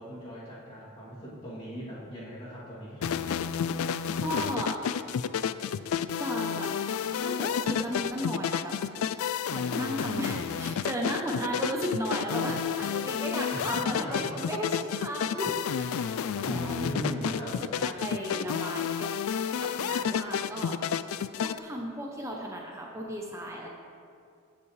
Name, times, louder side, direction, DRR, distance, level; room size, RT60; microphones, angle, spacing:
voice 1, 0.0-3.4 13.5-14.4 16.4-17.6, equal, 25° left, -9 dB, 2.8 m, -38 dB
sound 1, 3.0-21.6, left 8 dB, 80° left, 0.3 m, -30 dB
voice 2, 3.8-4.8 6.2-6.7 7.1-8.7 9.1-19.1 19.6-20.8 21.4-23.7, equal, 15° right, 0 dB, 0.7 m, -35 dB
15.5 x 7.2 x 3.3 m, 2.4 s
head